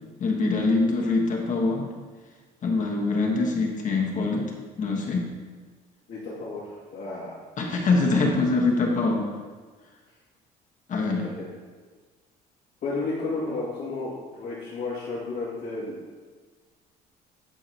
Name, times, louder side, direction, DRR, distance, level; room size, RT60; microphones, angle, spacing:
voice 1, 0.2-1.9 2.6-4.4 4.8-5.3 7.6-9.3 10.9-11.3, left 3 dB, 50° left, 0 dB, 1.3 m, -24 dB
voice 2, 6.1-7.4 11.1-11.4 12.8-15.9, left 3 dB, 75° left, -9 dB, 2.2 m, -32 dB
10.0 x 4.8 x 2.9 m, 1.4 s
cardioid pair, 110°, 17 cm